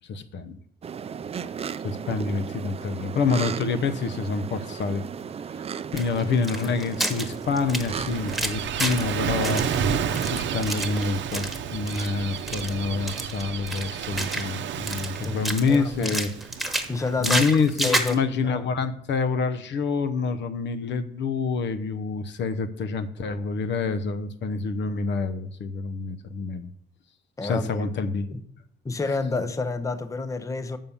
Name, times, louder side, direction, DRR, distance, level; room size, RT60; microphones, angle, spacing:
voice 1, 0.1-0.6 1.8-5.0 5.9-16.3 17.2-26.7 27.4-28.3, left 4 dB, 65° left, 0.8 m, -27 dB
sound 1, 0.8-8.4, right 7 dB, 30° right, 0.4 m, -35 dB
sound 2, 6.0-9.1 9.4-11.6 11.9-12.1 12.4-12.7 13.1-14.6 14.9-15.7 16.0-18.2, right 1 dB, ahead, 1.3 m, -30 dB
Gull seagull / Waves surf, 7.3-17.8, right 7 dB, 65° right, 0.7 m, -31 dB
voice 2, 15.2-16.2 16.9-17.4 17.8-18.6 27.4-27.9 28.3-28.4 28.8-30.8, left 3 dB, 15° left, 0.6 m, -29 dB
6.8 x 5.5 x 7.0 m
cardioid pair, 90°, 20 cm